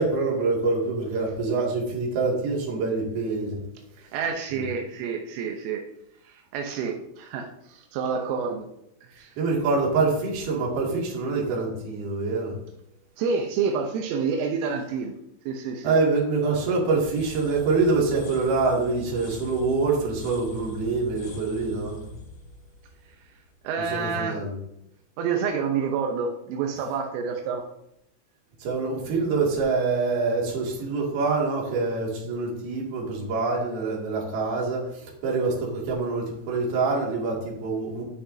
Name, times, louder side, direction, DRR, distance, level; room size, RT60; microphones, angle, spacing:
voice 1, 0.0-3.6 4.5-4.7 9.4-12.6 15.8-22.0 23.8-24.6 28.6-38.0, right 3 dB, 55° right, -3 dB, 3.9 m, -25 dB
voice 2, 4.0-5.9 6.3-8.7 9.0-9.3 13.2-15.1 15.5-16.0 23.7-24.4 25.2-27.6, right 5 dB, 85° right, 2 dB, 3.5 m, -28 dB
sound 1, 16.9-23.8, right 1 dB, 70° left, 1.6 m, -43 dB
18.5 x 6.3 x 2.8 m, 0.80 s
omnidirectional pair, 5.7 m